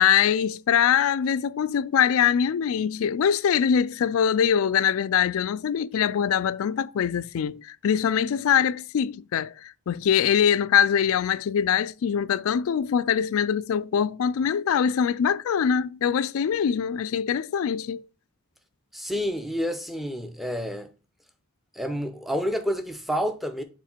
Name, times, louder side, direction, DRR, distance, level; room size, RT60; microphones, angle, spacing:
voice 1, 0.0-18.0, left 8 dB, 65° left, 0.3 m, -23 dB
voice 2, 18.9-20.9 21.7-23.6, equal, ahead, 0.6 m, -29 dB
7.1 x 3.7 x 4.3 m
head